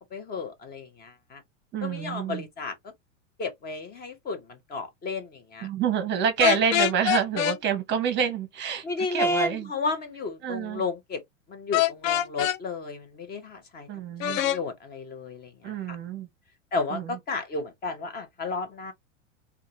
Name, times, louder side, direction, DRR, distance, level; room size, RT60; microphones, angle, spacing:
voice 1, 0.0-1.4 1.8-2.7 3.4-5.7 8.8-11.2 11.5-13.9 14.3-16.0 16.7-18.9, left 3 dB, 25° left, 0.9 m, -32 dB
voice 2, 1.7-2.5 5.6-9.7 10.4-10.8 13.9-14.4 15.6-16.3 16.9-17.2, right 7 dB, 30° right, 0.9 m, -27 dB
sound 1, 6.4-7.6 11.7-12.6 14.2-14.6, left 12 dB, 90° left, 0.6 m, -24 dB
3.6 x 2.3 x 2.7 m
supercardioid pair, 135°, 38 cm